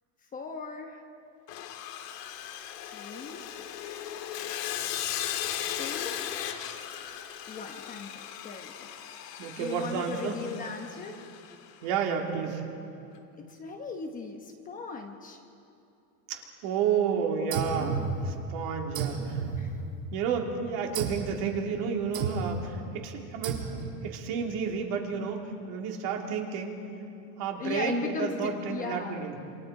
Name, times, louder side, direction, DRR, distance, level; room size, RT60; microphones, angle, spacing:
voice 1, 0.3-1.0 2.8-3.4 5.8-6.2 7.5-8.1 8.4-8.9 9.6-11.2 13.4-15.4 17.4-18.1 19.5-19.8 27.6-29.2, left 4 dB, 15° left, 3 dB, 1.0 m, -38 dB
Sawing, 1.5-11.7, left 10 dB, 90° left, 2.1 m, -37 dB
voice 2, 9.4-10.4 11.8-12.7 16.3-19.4 20.1-23.6 24.0-26.8 27.4-29.4, right 6 dB, 45° right, 1 dB, 2.8 m, -31 dB
sound 1, 17.5-18.6 18.9-20.2 20.9-21.4 22.1-22.7 23.4-24.1, right 5 dB, 85° right, 4.2 m, -33 dB
27.5 x 27.5 x 4.8 m, 2.6 s
supercardioid pair, 170°, 46 cm